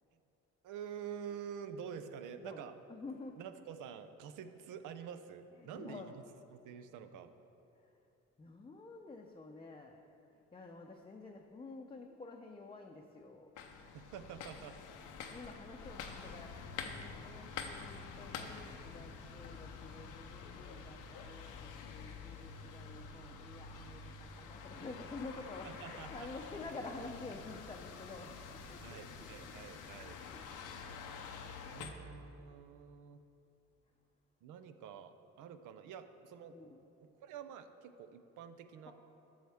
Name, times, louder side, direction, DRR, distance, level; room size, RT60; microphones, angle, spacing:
voice 1, 0.6-2.7 3.3-6.0 6.5-7.3 13.9-14.8 25.6-26.3 28.8-30.2 31.7-33.2 34.4-36.6 37.2-38.9, right 8 dB, 85° right, 9 dB, 0.6 m, -48 dB
voice 2, 2.4-3.4 5.6-6.2 7.8-7.9 8.4-10.0 10.3-13.5 15.3-29.0 29.4-29.5 30.3-30.4 36.5-36.9 38.9-39.0, left 3 dB, 20° left, 0 dB, 0.5 m, -50 dB
sound 1, 13.6-31.9, left 5 dB, 90° left, 0.7 m, -48 dB
12.5 x 6.4 x 3.5 m, 2.9 s
cardioid pair, 90°, 30 cm